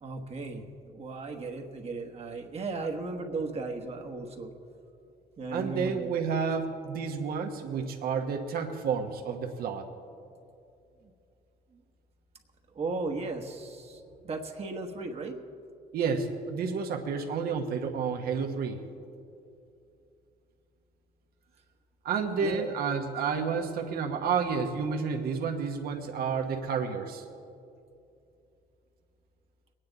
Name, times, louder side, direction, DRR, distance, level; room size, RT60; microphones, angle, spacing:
voice 1, 0.0-4.5 5.4-6.1 11.7-11.8 12.7-15.4 22.4-22.7, right 3 dB, 35° right, 3 dB, 1.3 m, -36 dB
voice 2, 5.5-9.8 15.9-18.8 22.0-27.2, right 6 dB, 65° right, 3 dB, 1.2 m, -30 dB
22.0 x 9.5 x 4.0 m, 2.6 s
cardioid pair, 110°, 17 cm